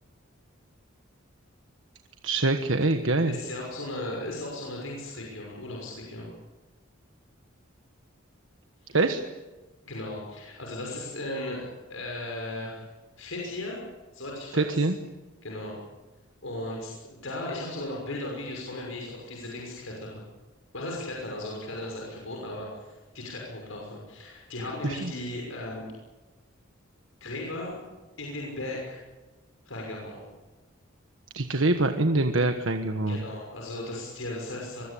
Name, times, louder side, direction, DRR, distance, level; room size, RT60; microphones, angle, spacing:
voice 1, 2.2-3.3 8.9-9.2 14.5-15.0 24.8-25.1 31.3-33.2, right 2 dB, 70° right, 6 dB, 1.4 m, -24 dB
voice 2, 3.2-6.3 8.8-9.0 9.8-12.9 13.2-13.8 14.1-14.9 15.4-15.8 16.4-20.2 20.7-25.9 27.2-27.8 28.2-29.0 29.6-30.3 33.1-34.8, left 1 dB, 80° left, -1 dB, 6.2 m, -36 dB
25.0 x 22.5 x 8.6 m, 1.2 s
head